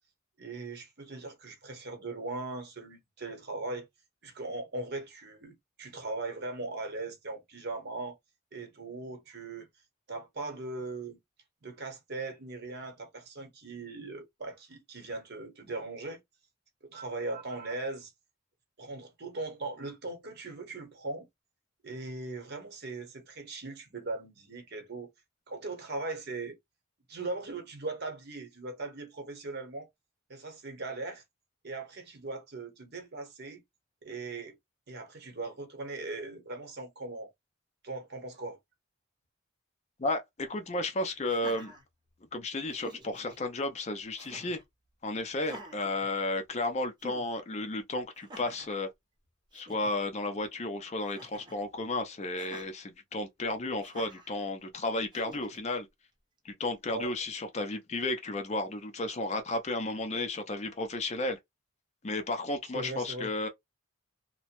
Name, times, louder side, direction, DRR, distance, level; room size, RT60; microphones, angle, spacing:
voice 1, 0.4-3.9 4.2-8.2 8.5-9.7 10.1-11.2 11.6-16.2 16.9-18.1 18.8-21.3 21.8-25.1 25.5-26.6 27.1-29.9 30.3-31.2 31.6-33.6 34.0-34.6 34.9-37.3 37.8-38.6 56.9-57.1 62.7-63.3, right 3 dB, 50° right, 0.9 m, -39 dB
voice 2, 40.0-41.7 42.3-44.6 45.0-48.9 49.5-55.9 56.4-61.4 62.0-63.5, left 2 dB, 30° left, 0.5 m, -33 dB
Laughter, 41.2-42.3 42.7-43.4 44.2-44.6 45.4-46.6 47.0-47.3 48.1-48.7 49.2-49.3 49.5-49.9 51.0-51.6 52.4-52.7 53.8-54.3 55.1-55.7, equal, 20° right, 0.6 m, -48 dB
2.8 x 2.1 x 2.9 m
head